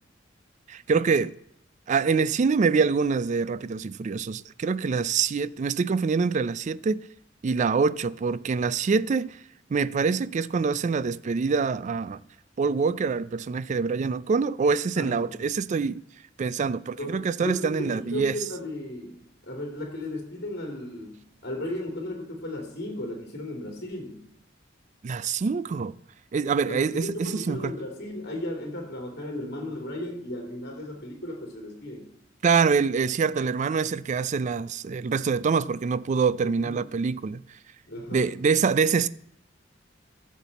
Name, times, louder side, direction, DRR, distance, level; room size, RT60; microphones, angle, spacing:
voice 1, 0.7-1.3 1.9-7.0 7.4-9.4 9.7-12.2 12.6-16.0 16.4-18.4 25.0-26.0 26.3-27.7 32.4-37.4 38.1-39.1, right 5 dB, 40° right, 0.3 m, -25 dB
voice 2, 15.0-15.3 17.0-24.2 26.7-32.1 36.4-36.8 37.9-38.3, left 1 dB, 60° left, 2.7 m, -35 dB
13.0 x 7.4 x 4.1 m
head